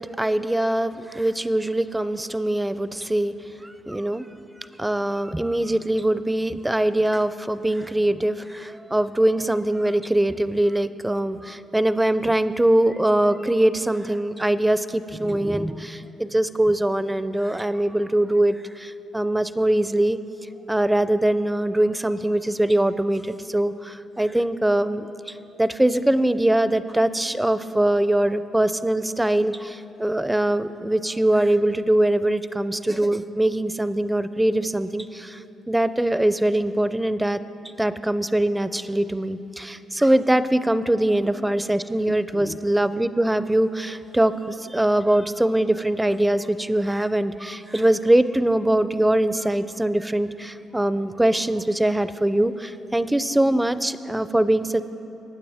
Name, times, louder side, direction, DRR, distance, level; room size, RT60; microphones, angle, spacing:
voice 1, 0.0-3.3 3.6-4.3 4.8-20.2 20.7-37.4 37.8-54.8, right 1 dB, 10° right, 13 dB, 0.4 m, -22 dB
20.0 x 9.1 x 3.5 m, 3.0 s
cardioid pair, 90°, 0 cm